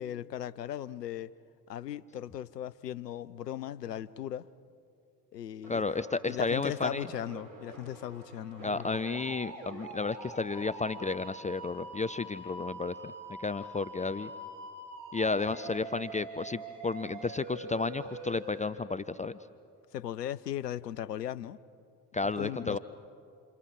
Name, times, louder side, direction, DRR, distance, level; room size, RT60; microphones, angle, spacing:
voice 1, 0.0-1.3 1.7-4.5 5.3-5.8 6.3-9.0 19.9-21.6 22.2-22.8, left 11 dB, 85° left, 17 dB, 0.5 m, -37 dB
sound 1, 5.6-6.4 6.8-18.7, right 2 dB, 40° right, 4.8 m, -45 dB
voice 2, 5.7-7.1 8.6-13.1 13.4-14.3 15.1-19.4 22.1-22.8, left 4 dB, 15° left, 14 dB, 0.5 m, -32 dB
29.0 x 27.5 x 4.9 m, 2.4 s
figure-of-eight pair, 45°, 47 cm